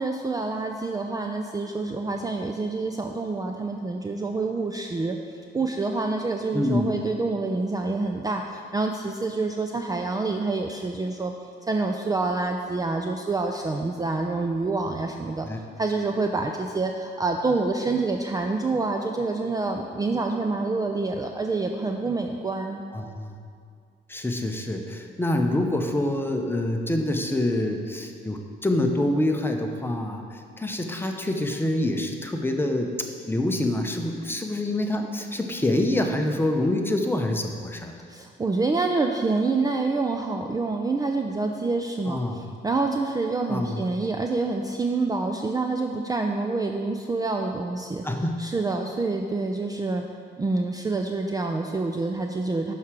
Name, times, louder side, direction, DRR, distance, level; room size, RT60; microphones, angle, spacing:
voice 1, 0.0-5.2 5.5-11.3 11.7-15.5 15.8-22.8 38.1-48.1 48.4-50.1 50.4-52.7, right 3 dB, 20° right, 3 dB, 0.4 m, -27 dB
voice 2, 6.5-6.9 15.4-15.6 22.9-23.3 24.1-32.9 33.3-37.9 42.1-42.4 43.5-43.8 48.0-48.4, left 1 dB, 10° left, 4 dB, 0.7 m, -26 dB
6.5 x 4.7 x 5.8 m, 2.2 s
cardioid pair, 90°, 20 cm